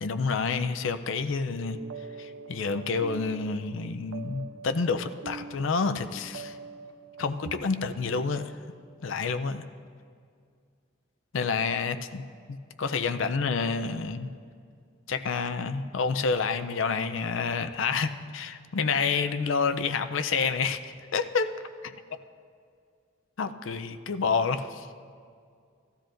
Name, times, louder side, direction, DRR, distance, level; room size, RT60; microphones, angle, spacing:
voice 1, 0.0-1.8 2.2-6.6 7.2-8.5 9.0-9.6 11.3-12.2 12.8-14.3 15.1-21.5 21.8-21.9 23.4-24.9, left 5 dB, 80° left, 9 dB, 0.5 m, -28 dB
sound 1, 1.6-7.5, right 5 dB, 75° right, 0.6 m, -44 dB
16.5 x 13.0 x 2.6 m, 2.2 s
head